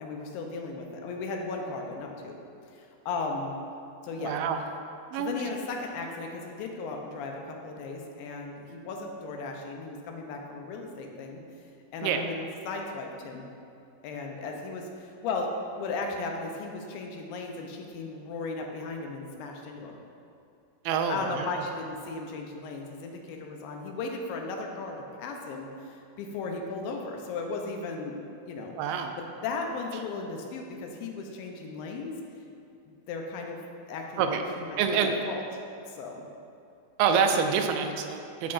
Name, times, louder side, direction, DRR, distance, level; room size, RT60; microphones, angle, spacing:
voice 1, 0.0-2.4 2.7-3.5 4.0-4.4 5.2-11.4 11.9-13.5 14.0-15.5 15.8-20.0 21.1-28.2 28.5-28.8 29.4-32.2 33.1-33.6 33.9-35.4 35.9-36.2, left 3 dB, 80° left, 2 dB, 2.5 m, -36 dB
voice 2, 4.2-4.6 5.1-5.3 12.0-12.2 20.9-21.5 28.8-29.2 34.2-34.4 34.8-35.2 37.0-38.5, right 6 dB, 80° right, 5 dB, 2.2 m, -26 dB
12.5 x 5.8 x 2.5 m, 2.7 s
omnidirectional pair, 4.2 m